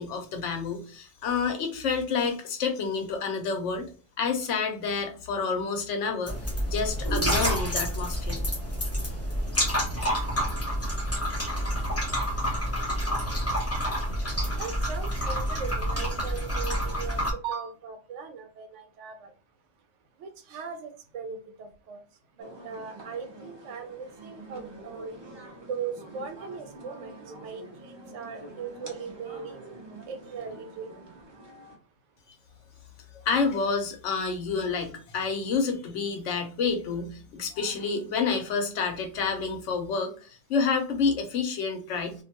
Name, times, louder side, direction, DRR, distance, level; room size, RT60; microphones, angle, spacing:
voice 1, 0.0-3.9 4.2-6.4 6.6-8.4 33.1-42.1, left 5 dB, 90° left, 5 dB, 1.0 m, -29 dB
sound 1, 6.3-17.3, equal, 15° left, 0.5 m, -28 dB
voice 2, 14.5-19.3 20.2-22.0 22.4-25.2 25.6-27.1 27.4-29.6 30.1-30.9, right 6 dB, 85° right, 6 dB, 0.9 m, -39 dB
sound 2, 22.4-31.8, right 2 dB, 30° right, 0.5 m, -46 dB
2.5 x 2.2 x 2.7 m, 0.38 s
omnidirectional pair, 1.2 m